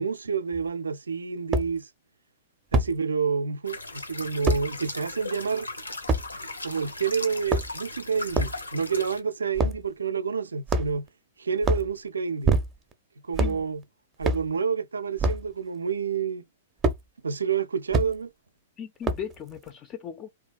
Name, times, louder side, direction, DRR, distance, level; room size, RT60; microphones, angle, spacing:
voice 1, 0.0-1.9 2.7-5.7 6.6-11.1 11.4-12.5 13.2-13.8 14.2-16.4 17.2-18.3, right 6 dB, 75° right, 0.3 m, -29 dB
sound 1, 0.5-0.6 1.5-1.7 2.7-2.9 4.5-4.6 6.1-6.3 7.3-7.9 8.3-8.6 9.6-9.8 10.7-11.1 11.6-11.9 12.4-12.9 13.3-13.6 14.2-14.5 15.2-15.5 16.8-17.0 17.9-18.1 19.0-19.4, right 2 dB, 25° right, 0.5 m, -24 dB
sound 2, 3.6-9.2, left 2 dB, 85° left, 0.5 m, -38 dB
voice 2, 18.8-20.3, left 8 dB, 30° left, 0.3 m, -37 dB
2.7 x 2.4 x 2.3 m
figure-of-eight pair, 105°, 0 cm